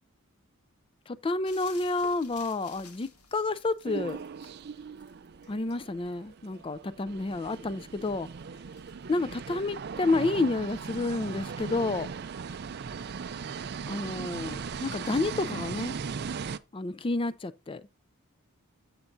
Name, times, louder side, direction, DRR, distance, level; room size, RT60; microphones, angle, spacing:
voice 1, 1.1-4.2 5.5-8.3 9.1-12.1 13.9-15.9 16.7-18.0, left 2 dB, 25° left, 0.4 m, -30 dB
sound 1, 1.4-10.8 12.9-13.0, left 5 dB, 85° left, 1.7 m, -56 dB
sound 2, 3.8-16.6, right 6 dB, 45° right, 0.4 m, -38 dB
11.5 x 6.6 x 2.6 m
head